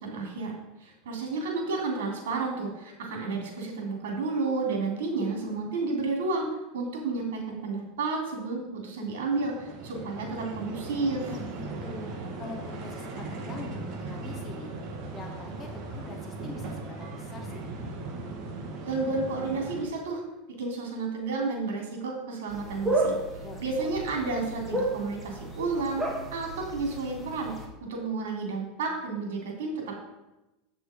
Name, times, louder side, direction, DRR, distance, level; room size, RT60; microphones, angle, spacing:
voice 1, 0.0-6.5 6.7-11.3 18.8-20.2 20.6-23.1 23.6-26.0 26.3-27.5 27.8-30.0, right 3 dB, 85° right, 1 dB, 2.9 m, -31 dB
sound 1, 9.0-19.9, right 3 dB, 45° right, 1.6 m, -38 dB
voice 2, 11.3-14.7 15.1-17.6 23.4-23.6, left 4 dB, 20° left, 1 dB, 1.0 m, -44 dB
sound 2, 22.5-27.7, right 2 dB, 10° right, 1.4 m, -32 dB
8.2 x 6.2 x 5.0 m, 1.0 s
supercardioid pair, 135°, 0 cm